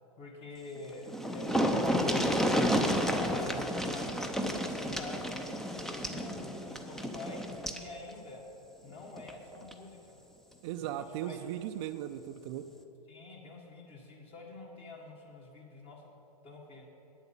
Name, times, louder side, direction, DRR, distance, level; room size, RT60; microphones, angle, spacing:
voice 1, 0.2-8.4 8.8-10.2 11.0-11.4 13.1-16.0 16.4-16.8, left 2 dB, 30° left, -1 dB, 1.6 m, -47 dB
sound 1, 0.8-0.9 1.1-7.9 9.2-9.3 9.7-9.8, equal, ahead, 0.6 m, -31 dB
voice 2, 10.6-12.6, right 11 dB, 45° right, 8 dB, 0.5 m, -37 dB
9.0 x 8.0 x 7.2 m, 2.9 s
hypercardioid pair, 115°, 19 cm